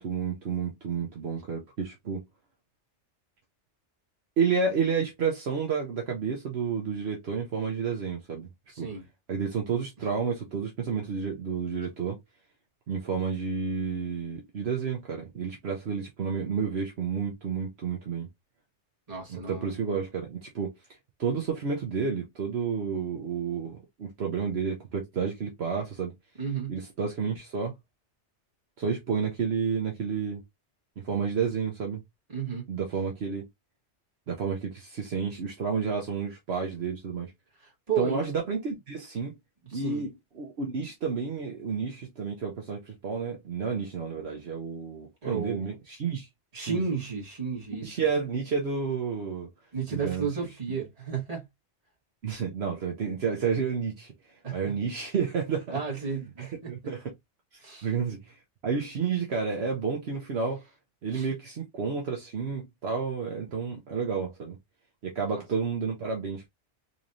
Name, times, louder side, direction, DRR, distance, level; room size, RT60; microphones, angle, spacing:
voice 1, 0.0-2.2 4.4-8.5 8.8-8.9 9.3-12.2 12.9-18.3 19.3-20.7 21.2-26.1 26.7-27.7 28.8-30.4 31.0-32.0 32.7-33.5 34.3-37.3 38.0-39.3 39.7-46.3 46.7-46.8 47.8-49.5 49.9-50.3 52.2-54.1 54.5-57.1 57.8-58.3 58.6-60.6 61.0-64.6 65.0-66.5, right 6 dB, 65° right, 1.1 m, -30 dB
voice 2, 8.7-9.0 19.1-19.9 26.4-26.8 32.3-32.6 37.6-38.2 39.7-40.1 45.2-45.7 46.5-48.0 49.7-51.4 54.4-54.7 55.7-56.7 57.6-57.9 61.1-61.3 65.2-65.4, right 6 dB, 30° right, 1.7 m, -33 dB
4.1 x 3.2 x 2.6 m
omnidirectional pair, 1.2 m